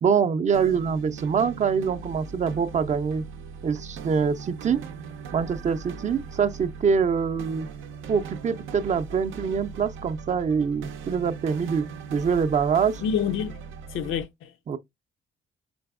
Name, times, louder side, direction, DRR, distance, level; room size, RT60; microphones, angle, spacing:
voice 1, 0.0-3.2 3.6-4.8 5.3-7.7 8.1-11.8 12.1-13.0 14.7-14.8, right 6 dB, 35° right, 0.4 m, -24 dB
sound 1, 0.5-14.3, right 6 dB, 85° right, 0.5 m, -40 dB
voice 2, 13.0-13.6 13.9-14.5, left 8 dB, 85° left, 0.5 m, -27 dB
3.8 x 3.4 x 2.3 m
cardioid pair, 90°, 20 cm